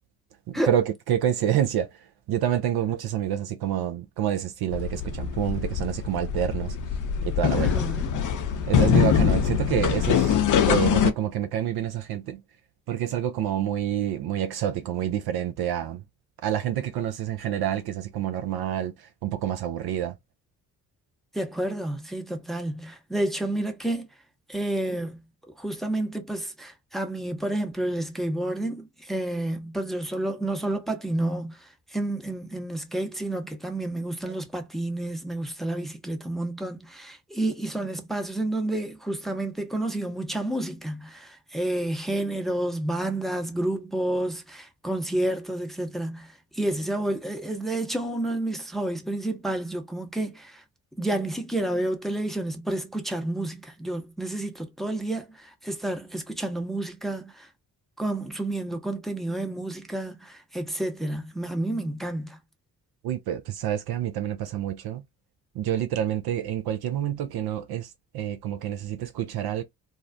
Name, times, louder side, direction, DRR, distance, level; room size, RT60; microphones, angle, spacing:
voice 1, 0.5-1.9 2.3-6.8 7.2-7.8 8.7-10.4 10.7-12.4 12.9-16.0 16.4-20.1 34.2-34.3 63.0-65.0 65.5-69.6, right 10 dB, 55° right, 0.5 m, -28 dB
sound 1, 4.7-11.1, left 8 dB, 45° left, 0.5 m, -23 dB
voice 2, 7.6-8.1 21.3-24.1 24.5-25.2 25.6-50.6 51.0-57.5 58.0-62.4, right 1 dB, ahead, 0.7 m, -30 dB
2.5 x 2.0 x 2.5 m
hypercardioid pair, 40°, 47 cm